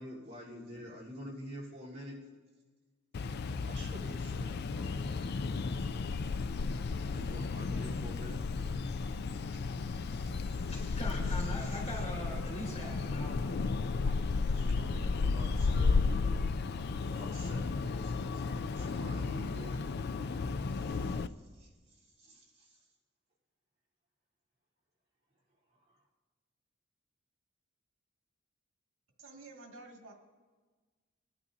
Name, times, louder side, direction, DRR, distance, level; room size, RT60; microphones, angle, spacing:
voice 1, 0.0-2.2 3.7-6.1 7.1-8.5 9.5-9.7 10.1-10.7 14.1-16.1 17.0-19.8 20.7-22.8 25.7-25.9, equal, 35° right, -7 dB, 3.7 m, -48 dB
sound 1, 3.1-21.3, left 4 dB, 55° left, 0.4 m, -33 dB
voice 2, 10.5-13.5, equal, 35° left, -5 dB, 4.5 m, -42 dB
voice 3, 29.2-30.1, right 2 dB, 80° right, 0 dB, 2.1 m, -50 dB
23.0 x 11.5 x 2.7 m, 1.4 s
head